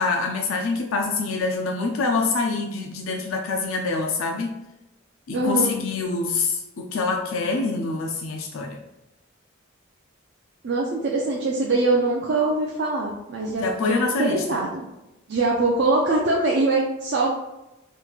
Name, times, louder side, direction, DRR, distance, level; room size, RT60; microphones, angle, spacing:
voice 1, 0.0-4.5 5.3-8.8 13.6-14.6, left 3 dB, 70° left, 2 dB, 0.4 m, -25 dB
voice 2, 5.3-5.8 10.6-14.9 15.3-17.3, right 2 dB, 55° right, -2 dB, 0.5 m, -23 dB
3.5 x 3.0 x 2.3 m, 0.95 s
head